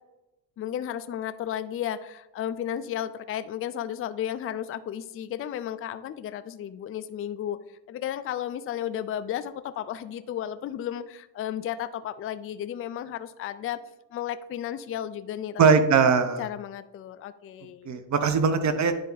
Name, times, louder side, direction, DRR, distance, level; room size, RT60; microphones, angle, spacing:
voice 1, 0.6-7.6 7.9-13.8 14.1-15.6 16.4-18.0, left 10 dB, 30° left, 11 dB, 0.4 m, -33 dB
voice 2, 15.6-16.4 17.8-18.9, right 5 dB, 40° right, 9 dB, 0.9 m, -20 dB
10.0 x 3.5 x 4.0 m, 0.95 s
cardioid pair, 95°, 44 cm